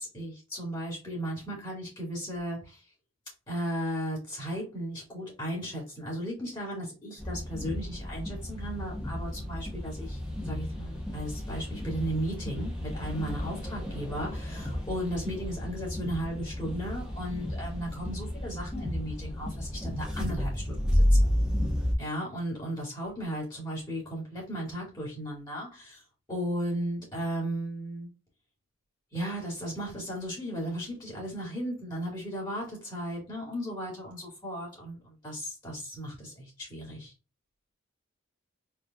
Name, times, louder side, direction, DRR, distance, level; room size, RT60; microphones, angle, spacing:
voice 1, 0.0-2.8 3.5-10.2 10.4-21.2 22.0-26.0 26.3-28.1 29.1-37.1, equal, 20° left, -3 dB, 2.2 m, -35 dB
sound 1, 7.2-21.9, left 1 dB, 5° right, 1.2 m, -31 dB
4.6 x 3.5 x 2.4 m, 0.30 s
head